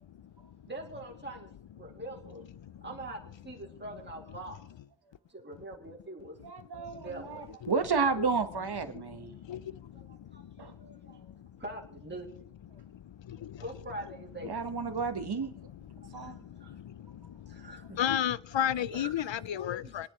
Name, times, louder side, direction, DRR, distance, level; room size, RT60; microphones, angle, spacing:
voice 1, 0.7-1.5 1.8-2.4 2.8-3.2 3.4-4.6 5.3-6.4 6.7-7.6 9.5-9.6 9.9-11.2 11.6-12.3 13.6-14.5 16.0-16.3 16.6-16.7 17.5-18.0 18.9-19.3 19.8-20.0, right 1 dB, 25° right, 2.5 m, -44 dB
voice 2, 6.4-9.3 10.6-10.7 14.5-15.5 16.1-16.4, right 5 dB, 55° right, 1.3 m, -31 dB
voice 3, 8.9-11.5 12.7-13.6 15.1-15.2 15.6-20.1, left 10 dB, 70° left, 0.6 m, -36 dB
29.0 x 10.0 x 3.1 m
wide cardioid pair, 85°, 46 cm